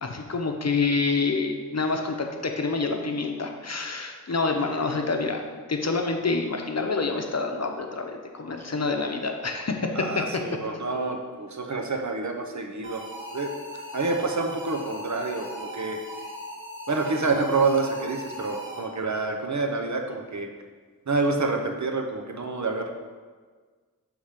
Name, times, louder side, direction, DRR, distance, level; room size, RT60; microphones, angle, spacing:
voice 1, 0.0-5.4 5.7-10.2, left 4 dB, 50° left, 3 dB, 0.8 m, -27 dB
voice 2, 9.9-13.0 13.3-13.5 13.9-16.0 16.9-20.5 21.1-22.9, right 3 dB, 55° right, 3 dB, 0.8 m, -27 dB
sound 1, 12.8-19.1, equal, 35° right, 1.5 m, -39 dB
7.1 x 3.5 x 4.9 m, 1.5 s
wide cardioid pair, 45°, 34 cm